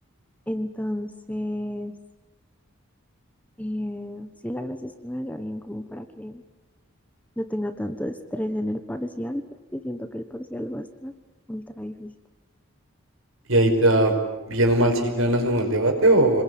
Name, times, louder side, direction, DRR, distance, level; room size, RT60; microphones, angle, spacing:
voice 1, 0.5-2.0 3.6-6.4 7.4-9.4 9.7-11.1 11.5-12.1, left 1 dB, 5° left, 8 dB, 1.2 m, -32 dB
voice 2, 13.5-14.2 14.5-16.4, right 1 dB, 70° right, 4 dB, 5.1 m, -19 dB
27.0 x 21.0 x 9.4 m, 1.1 s
head